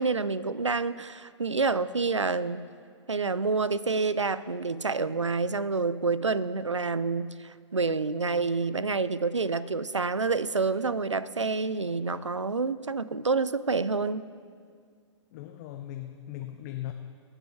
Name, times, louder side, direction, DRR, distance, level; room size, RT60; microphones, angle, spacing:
voice 1, 0.0-2.7 3.1-14.2, right 4 dB, 85° right, 17 dB, 0.5 m, -28 dB
voice 2, 15.3-16.9, left 13 dB, 35° left, 5 dB, 0.6 m, -38 dB
22.5 x 8.1 x 3.4 m, 2.1 s
figure-of-eight pair, 110°, 15 cm